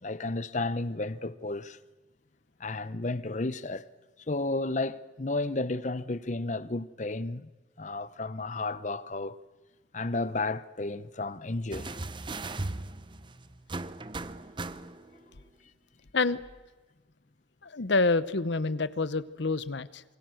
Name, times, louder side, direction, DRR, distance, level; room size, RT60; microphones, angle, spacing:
voice 1, 0.0-1.8 2.6-3.8 4.3-7.5 7.8-9.4 9.9-11.9, left 2 dB, 40° left, 0.8 m, -32 dB
sound 1, 11.7-15.2 16.4-16.5, right 2 dB, 25° right, 0.8 m, -38 dB
voice 2, 17.6-20.0, left 3 dB, 70° left, 0.9 m, -27 dB
27.5 x 23.5 x 6.4 m
head